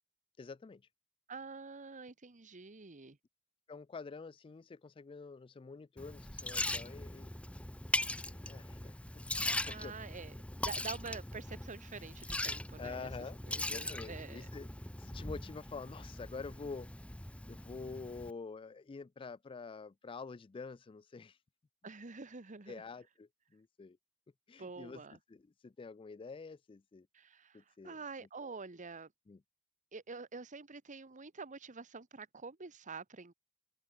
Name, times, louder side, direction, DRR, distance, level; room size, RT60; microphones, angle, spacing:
voice 1, 0.4-0.8 3.7-7.3 8.3-9.9 12.8-13.4 13.7-14.7 15.0-16.9 17.5-21.4 22.7-24.0 24.5-25.0 25.3-27.1 27.5-28.0 28.4-28.6 29.3-29.4, left 4 dB, 25° left, 0.3 m, -47 dB
voice 2, 1.3-3.2 9.6-10.3 10.6-13.1 13.5-14.5 21.8-22.8 24.6-25.2 27.1-29.1 29.9-33.3, right 4 dB, 35° right, 1.1 m, -47 dB
Liquid, 6.0-18.3, left 1 dB, 5° left, 0.8 m, -40 dB
open air
head